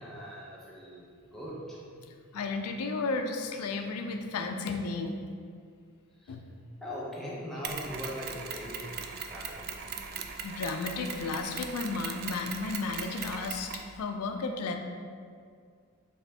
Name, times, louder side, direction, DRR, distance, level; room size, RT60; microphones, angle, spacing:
voice 1, 0.0-1.8 6.2-6.4 6.8-9.7, equal, ahead, -6 dB, 0.7 m, -40 dB
voice 2, 2.3-5.1 6.3-6.5 10.4-14.8, left 3 dB, 85° left, 5 dB, 0.4 m, -33 dB
Mechanisms, 7.6-13.9, right 6 dB, 45° right, 0.3 m, -39 dB
4.1 x 3.3 x 3.4 m, 2.2 s
head